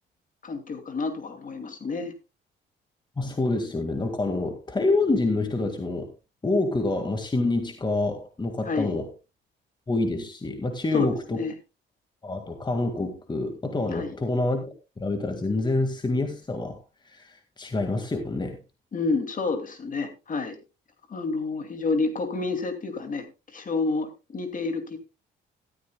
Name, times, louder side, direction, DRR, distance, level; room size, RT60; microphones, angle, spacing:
voice 1, 0.4-2.1 8.6-9.0 10.9-11.5 13.9-14.2 18.9-20.6 21.1-25.0, left 3 dB, 40° left, 2.6 m, -29 dB
voice 2, 3.2-6.1 6.4-9.1 9.9-11.4 12.2-14.7 15.0-16.8 17.1-18.6, left 2 dB, 20° left, 2.0 m, -27 dB
14.0 x 13.0 x 2.3 m
cardioid pair, 90°, 20 cm